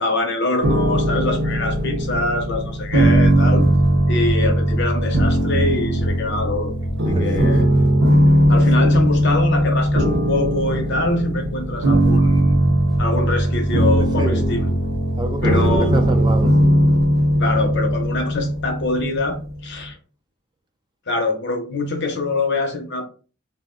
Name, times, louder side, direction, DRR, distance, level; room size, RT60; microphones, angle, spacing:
voice 1, 0.0-3.7 4.1-6.7 7.1-7.7 8.5-12.5 13.0-14.7 15.4-15.9 17.4-20.0 21.1-23.0, left 2 dB, 60° left, 0.7 m, -24 dB
sound 1, 0.6-19.6, right 1 dB, 65° right, 0.8 m, -18 dB
voice 2, 7.0-7.6 8.1-8.4 8.8-9.0 14.0-14.5 15.2-16.7, right 1 dB, 20° right, 0.5 m, -29 dB
2.5 x 2.1 x 3.7 m
head